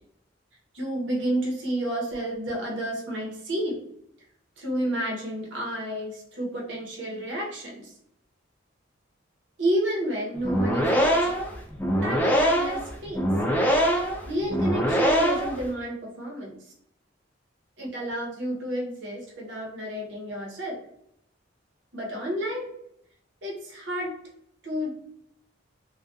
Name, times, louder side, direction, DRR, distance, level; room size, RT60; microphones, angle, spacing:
voice 1, 0.7-3.8 4.6-7.9 9.6-11.4 12.0-13.3 14.2-16.7 17.8-20.8 21.9-22.7 23.4-24.1 24.6-24.9, right 1 dB, 65° right, -2 dB, 0.8 m, -30 dB
sound 1, 10.4-15.6, equal, 10° left, 0.3 m, -23 dB
2.3 x 2.2 x 2.5 m, 0.73 s
head